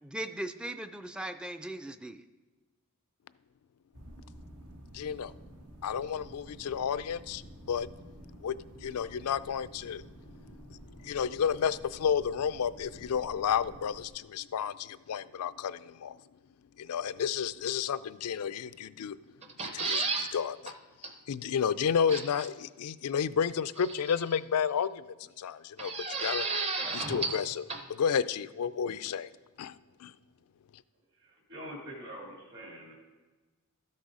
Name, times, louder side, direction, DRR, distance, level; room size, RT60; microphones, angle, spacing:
voice 1, 0.0-2.2, right 1 dB, 5° right, 9 dB, 0.3 m, -38 dB
sound 1, 3.9-14.1, right 1 dB, 75° right, 1.3 m, -51 dB
voice 2, 4.9-5.3 5.8-7.9 8.4-10.1 10.4-16.2 16.8-19.2 19.6-20.7 21.3-26.5 26.9-29.3 29.6-30.1, left 7 dB, 85° left, 16 dB, 0.4 m, -32 dB
sound 2, 19.4-20.3 20.7-20.8 21.0-21.1 22.1-22.5 23.8-24.4 25.8-27.4 27.7-27.8, right 4 dB, 30° right, 0.8 m, -33 dB
voice 3, 31.2-32.9, equal, 55° right, -1 dB, 2.5 m, -44 dB
13.0 x 6.5 x 4.9 m, 1.3 s
head